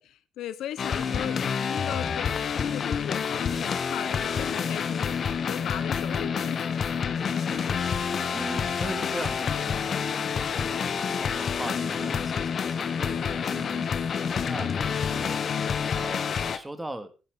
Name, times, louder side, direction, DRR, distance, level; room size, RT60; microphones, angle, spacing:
voice 1, 0.0-5.2 5.5-7.0, left 11 dB, 80° left, 1.1 m, -38 dB
sound 1, 0.8-16.6, left 6 dB, 50° left, 1.2 m, -28 dB
voice 2, 1.1-1.5 6.2-6.4 7.5-7.7 8.3-13.9 14.4-15.4 15.9-17.1, right 1 dB, 10° right, 2.4 m, -39 dB
15.0 x 11.0 x 4.0 m
cardioid pair, 90°, 0 cm